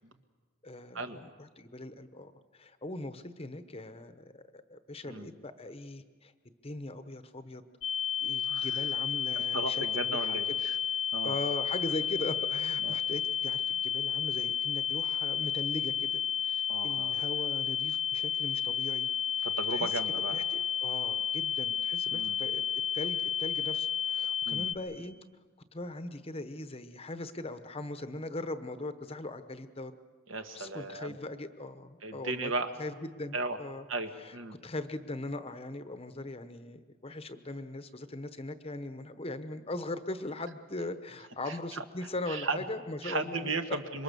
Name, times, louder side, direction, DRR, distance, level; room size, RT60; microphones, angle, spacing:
voice 1, 0.6-6.3 6.6-7.6 8.2-10.6 11.2-19.1 19.4-19.9 20.3-22.6 22.9-25.2 25.7-29.9 30.5-32.5 32.8-33.8 34.2-34.3 34.6-43.5, left 2 dB, 25° left, 10 dB, 0.9 m, -40 dB
sound 1, 7.8-24.8, left 8 dB, 65° left, 1.1 m, -31 dB
voice 2, 8.4-8.8 9.3-10.8 11.1-11.4 12.8-12.9 16.7-17.2 19.4-20.4 22.1-22.4 24.4-24.7 30.3-31.2 32.0-32.7 33.3-33.6 33.9-34.6 41.5-41.8 42.3-42.6 43.0-44.0, right 3 dB, 65° right, 6 dB, 1.6 m, -36 dB
26.5 x 23.5 x 6.9 m, 1.4 s
head